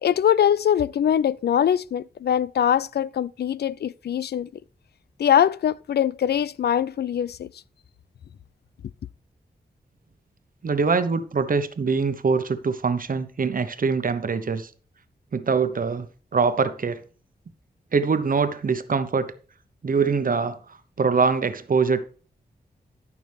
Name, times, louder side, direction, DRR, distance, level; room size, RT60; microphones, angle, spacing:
voice 1, 0.0-4.5 5.2-7.5, left 9 dB, 75° left, 0.4 m, -22 dB
voice 2, 10.6-14.7 15.3-17.0 17.9-19.3 19.8-22.0, right 5 dB, 55° right, 1.0 m, -23 dB
12.5 x 6.0 x 3.5 m
cardioid pair, 65°, 17 cm